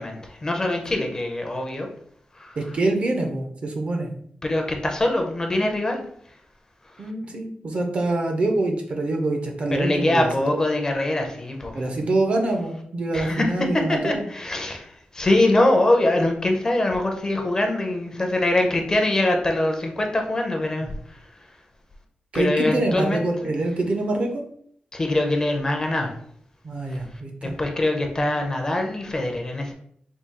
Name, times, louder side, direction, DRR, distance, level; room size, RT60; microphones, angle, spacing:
voice 1, 0.0-1.9 2.4-2.6 4.4-6.0 9.7-11.8 13.1-13.5 13.7-20.9 22.3-23.2 24.9-26.1 27.6-29.7, left 1 dB, 20° left, 3 dB, 0.5 m, -23 dB
voice 2, 2.6-4.1 7.0-10.6 11.7-14.3 22.3-24.4 26.6-27.5, right 2 dB, 40° right, 3 dB, 0.5 m, -25 dB
3.6 x 2.3 x 4.1 m, 0.65 s
wide cardioid pair, 175°, 3 cm